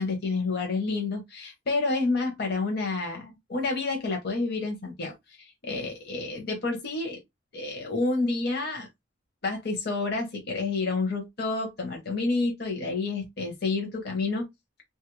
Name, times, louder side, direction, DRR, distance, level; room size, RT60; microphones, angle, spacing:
voice 1, 0.0-5.1 5.4-7.2 7.5-8.9 9.4-14.5, left 3 dB, 55° left, 0.8 m, -29 dB
3.0 x 2.4 x 3.0 m
head